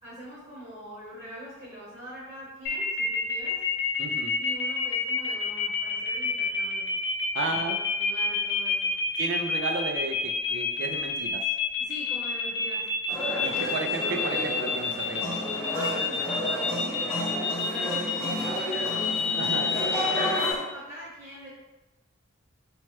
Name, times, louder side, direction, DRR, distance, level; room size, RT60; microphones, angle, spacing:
voice 1, 0.0-3.6 4.4-6.9 7.3-8.9 11.8-12.9 15.7-19.1 19.4-21.5, equal, 25° right, -9 dB, 0.9 m, -43 dB
sound 1, 2.7-20.5, left 5 dB, 60° left, 0.4 m, -28 dB
voice 2, 4.0-4.4 7.3-7.8 9.2-11.4 13.4-15.4 19.4-19.7, right 3 dB, 65° right, 3 dB, 0.3 m, -33 dB
sound 2, 13.1-20.6, equal, 15° left, 0.5 m, -32 dB
2.9 x 2.2 x 3.1 m, 1.1 s
head